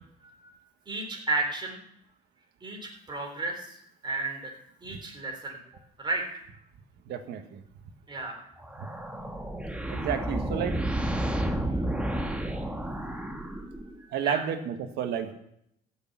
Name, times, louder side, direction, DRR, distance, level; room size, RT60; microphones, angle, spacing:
voice 1, 0.2-0.5 0.9-1.8 2.6-4.5 4.8-5.6 6.0-6.3 8.1-8.4 11.7-11.9 13.1-13.2 14.0-14.4, right 3 dB, 25° right, 2 dB, 4.0 m, -33 dB
voice 2, 7.1-7.6 9.9-10.8 14.1-15.3, right 8 dB, 80° right, 7 dB, 1.6 m, -31 dB
sound 1, 8.6-14.0, right 1 dB, 5° right, 1.6 m, -31 dB
14.5 x 6.7 x 8.8 m, 0.76 s
cardioid pair, 110°, 17 cm